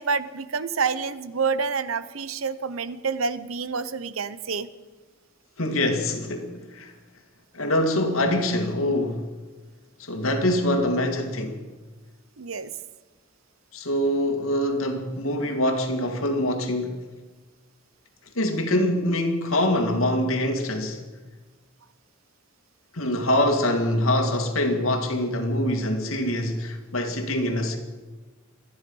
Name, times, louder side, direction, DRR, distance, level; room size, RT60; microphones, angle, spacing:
voice 1, 0.0-4.7 12.4-12.7, right 5 dB, 85° right, 0.8 m, -28 dB
voice 2, 5.6-6.9 7.5-9.3 10.0-11.7 13.7-17.0 18.4-21.0 22.9-27.8, left 1 dB, 85° left, 2.2 m, -24 dB
26.5 x 9.9 x 5.5 m
head